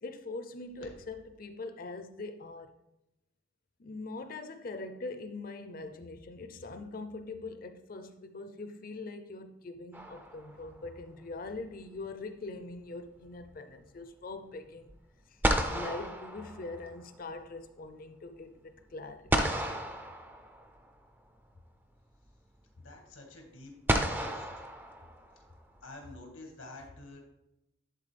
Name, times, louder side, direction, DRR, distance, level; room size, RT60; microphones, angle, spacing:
voice 1, 0.0-2.7 3.8-14.9 15.3-15.4 15.7-19.5, left 3 dB, 45° left, 0.5 m, -42 dB
sound 1, 9.9-10.8 14.9-15.0 15.4-17.1 19.3-20.9 22.2-22.3 23.9-25.5, right 1 dB, 10° right, 0.4 m, -32 dB
voice 2, 22.8-23.7 24.2-24.5 25.8-27.2, left 2 dB, 90° left, 1.8 m, -48 dB
11.0 x 3.8 x 3.4 m
head